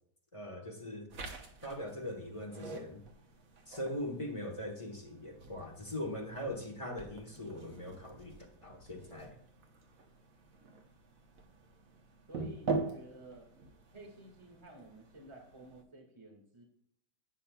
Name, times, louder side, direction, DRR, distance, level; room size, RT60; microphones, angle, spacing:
voice 1, 0.3-1.1 1.6-3.0 3.7-9.4, left 1 dB, 20° left, 2 dB, 1.2 m, -41 dB
sound 1, 1.1-15.8, right 4 dB, 55° right, 1.4 m, -44 dB
voice 2, 12.3-13.5 13.9-16.6, right 2 dB, 15° right, 0 dB, 1.9 m, -52 dB
11.5 x 8.6 x 2.3 m, 0.67 s
omnidirectional pair, 1.9 m